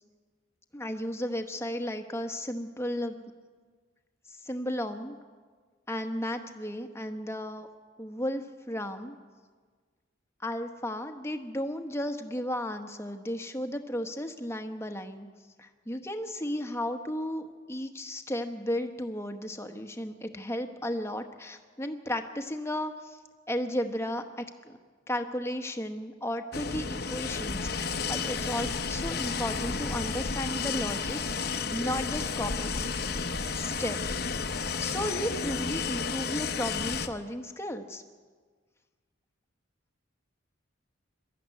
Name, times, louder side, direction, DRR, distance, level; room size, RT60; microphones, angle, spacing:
voice 1, 0.7-3.3 4.3-5.2 5.9-7.7 8.0-9.2 10.4-15.3 15.6-23.2 23.5-24.8 25.1-31.4 31.7-32.9 33.5-34.0 34.8-38.0, left 1 dB, 15° left, 6 dB, 1.1 m, -34 dB
sound 1, 26.5-37.1, left 5 dB, 55° left, 0.9 m, -32 dB
22.5 x 13.0 x 9.5 m, 1.5 s
head